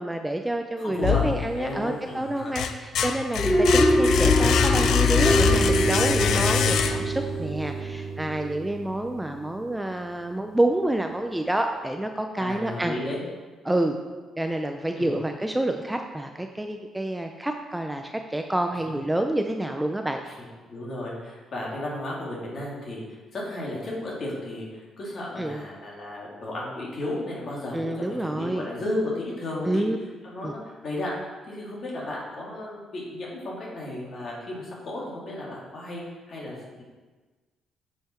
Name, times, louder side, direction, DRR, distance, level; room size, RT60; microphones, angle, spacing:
voice 1, 0.0-12.9 13.6-13.9 14.4-20.2 25.4-25.6 27.7-28.7 29.7-30.0 30.4-30.5, right 1 dB, 5° right, 4 dB, 0.4 m, -28 dB
voice 2, 0.8-1.2 1.5-2.5 12.4-13.2 14.9-15.1 20.3-29.9 30.2-31.1 31.5-36.8, left 1 dB, 45° left, -5 dB, 2.6 m, -34 dB
sound 1, 1.0-1.9 2.3-7.3, left 8 dB, 70° left, 0.5 m, -23 dB
sound 2, 3.4-9.6, right 1 dB, 15° left, 2.4 m, -25 dB
8.7 x 5.6 x 4.4 m, 1.3 s
cardioid pair, 125°, 0 cm